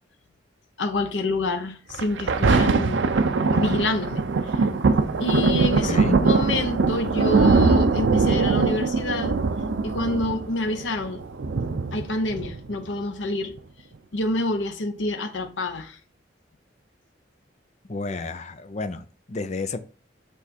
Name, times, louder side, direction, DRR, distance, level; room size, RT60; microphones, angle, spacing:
voice 1, 0.8-3.1 3.5-4.2 4.5-4.6 5.2-9.4 9.8-11.2 11.9-13.5 14.1-16.0, left 2 dB, 80° left, 0.8 m, -27 dB
Thunder, 1.9-12.9 13.6-13.7, right 4 dB, 75° right, 0.5 m, -22 dB
voice 2, 5.8-6.2 17.8-19.8, left 3 dB, 35° left, 0.6 m, -30 dB
7.2 x 3.4 x 4.2 m
head